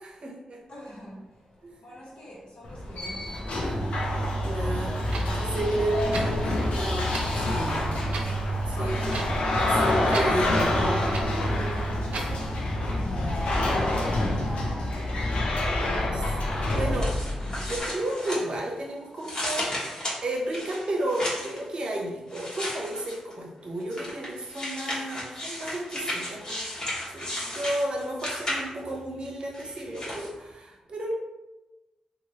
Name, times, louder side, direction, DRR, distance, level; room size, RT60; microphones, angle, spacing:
voice 1, 0.0-0.6 1.6-1.8 4.4-5.0 5.3-8.3 8.7-9.3 9.6-11.0 15.8-17.1 17.4-20.0 20.2-26.7 27.1-31.1, right 1 dB, 55° right, -1 dB, 0.7 m, -33 dB
voice 2, 0.7-5.7 11.2-16.6 27.0-27.3, equal, 65° left, -5 dB, 1.2 m, -44 dB
sound 1, 2.6-17.8, left 1 dB, 85° left, 0.6 m, -27 dB
Clock, 4.9-12.4, right 2 dB, 85° right, 0.5 m, -39 dB
sound 2, 16.7-18.8 19.2-21.6 22.3-23.3 23.9-28.9 29.5-30.3, left 1 dB, 40° left, 1.1 m, -34 dB
3.0 x 2.5 x 2.8 m, 1.1 s
cardioid pair, 85°, 2 cm